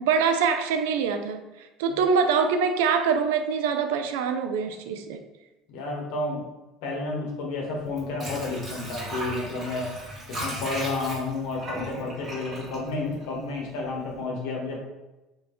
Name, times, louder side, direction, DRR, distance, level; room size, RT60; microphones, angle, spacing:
voice 1, 0.0-5.2, right 6 dB, 85° right, 8 dB, 0.3 m, -24 dB
voice 2, 5.7-6.4 6.8-9.9 10.3-14.8, left 3 dB, 75° left, -1 dB, 0.9 m, -31 dB
Water / Sink (filling or washing), 7.8-13.7 14.0-14.1, right 1 dB, 35° right, 1.3 m, -36 dB
2.7 x 2.6 x 3.5 m, 1.1 s
supercardioid pair, 95°, 0 cm